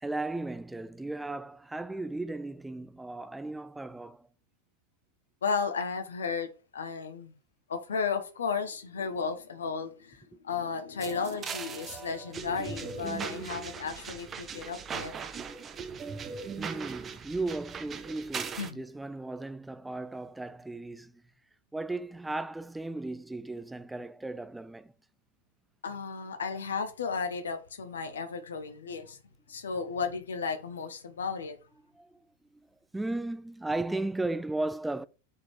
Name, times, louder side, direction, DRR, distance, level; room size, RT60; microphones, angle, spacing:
voice 1, 0.0-4.3 16.6-21.2 21.7-24.9 31.9-32.2 32.9-35.0, right 2 dB, 5° right, 0.5 m, -36 dB
voice 2, 5.4-7.3 7.7-15.1 18.6-18.8 25.8-29.2 29.5-31.6, left 5 dB, 65° left, 1.3 m, -34 dB
sound 1, 11.0-18.7, right 6 dB, 20° right, 0.9 m, -39 dB
7.1 x 4.5 x 4.8 m
figure-of-eight pair, 90°, 0 cm